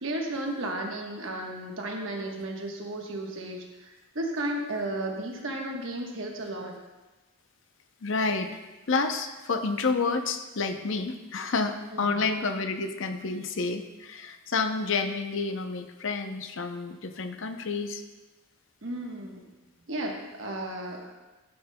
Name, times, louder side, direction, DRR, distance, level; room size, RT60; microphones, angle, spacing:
voice 1, 0.0-6.7 11.9-12.2 18.8-19.4 19.9-21.1, right 1 dB, 60° right, 1 dB, 1.2 m, -34 dB
voice 2, 8.0-8.5 8.9-18.0, left 4 dB, 55° left, 8 dB, 0.6 m, -29 dB
11.5 x 8.7 x 2.2 m, 1.1 s
head